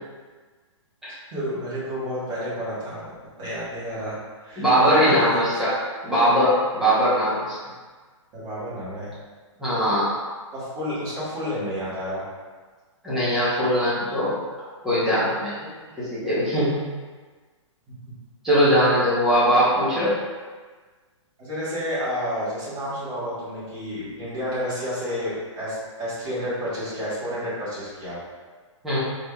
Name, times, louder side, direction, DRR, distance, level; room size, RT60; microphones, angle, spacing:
voice 1, 1.3-3.1 3.4-5.3 8.3-9.1 10.5-12.2 18.1-18.2 21.4-28.2, equal, 20° right, -10 dB, 1.3 m, -30 dB
voice 2, 4.6-5.7 6.0-7.6 9.6-10.1 13.0-14.4 14.8-15.5 16.0-16.9 18.4-20.1 28.8-29.0, equal, ahead, -12 dB, 0.8 m, -20 dB
4.1 x 3.4 x 2.2 m, 1.4 s
hypercardioid pair, 170°, 16 cm